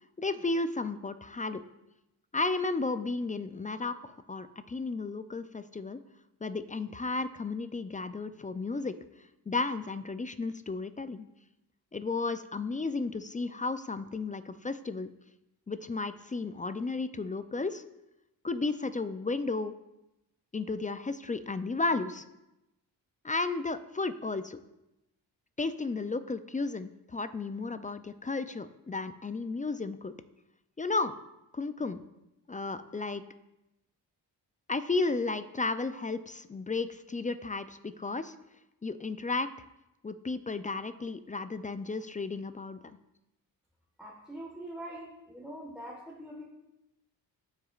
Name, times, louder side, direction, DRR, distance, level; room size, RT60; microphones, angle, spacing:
voice 1, 0.2-1.6 2.3-6.0 6.4-9.0 9.5-11.3 11.9-15.1 15.7-17.8 18.4-19.7 20.5-22.2 23.2-24.6 25.6-30.2 30.8-31.1 31.5-32.0 32.5-33.2 34.7-38.3 38.8-39.5 40.0-43.0, left 3 dB, 20° left, 11 dB, 0.4 m, -33 dB
voice 2, 44.0-46.4, right 1 dB, ahead, -2 dB, 1.3 m, -43 dB
12.5 x 4.8 x 2.4 m, 0.92 s
supercardioid pair, 45°, 45 cm